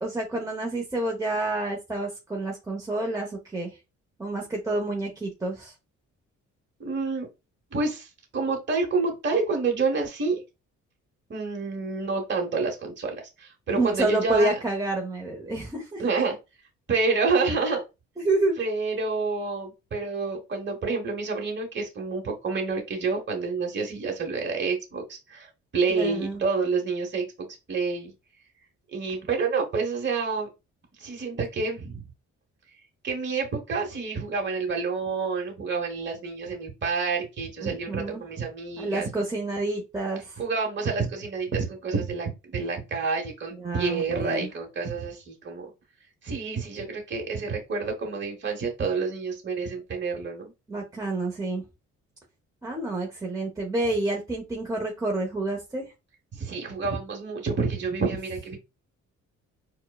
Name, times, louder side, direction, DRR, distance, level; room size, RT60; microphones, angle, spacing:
voice 1, 0.0-3.8 4.2-5.7 13.7-16.0 18.2-18.6 25.9-26.4 37.6-38.2 38.8-40.4 43.6-44.5 50.7-51.6 52.6-55.8, right 2 dB, 10° right, 0 dB, 0.8 m, -28 dB
voice 2, 6.8-7.3 7.7-10.4 11.3-14.5 16.0-16.4 16.9-17.8 18.6-28.1 28.9-30.5 31.0-32.0 33.0-39.1 40.4-45.7 46.2-50.5 56.3-58.6, right 4 dB, 35° right, 2 dB, 1.1 m, -28 dB
4.4 x 2.2 x 2.3 m, 0.25 s
cardioid pair, 90°, 30 cm